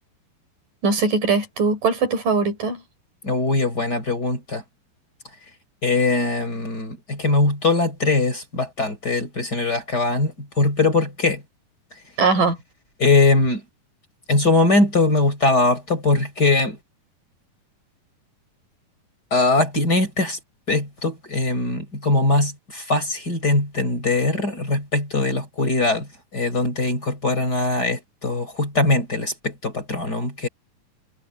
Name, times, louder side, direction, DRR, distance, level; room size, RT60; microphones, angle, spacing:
voice 1, 0.8-2.8 12.2-12.6, right 4 dB, 65° right, 6.5 m, -20 dB
voice 2, 3.2-4.6 5.8-11.4 13.0-13.6 14.3-16.8 19.3-20.4 20.7-30.5, left 2 dB, 25° left, 4.8 m, -21 dB
omnidirectional pair, 4.2 m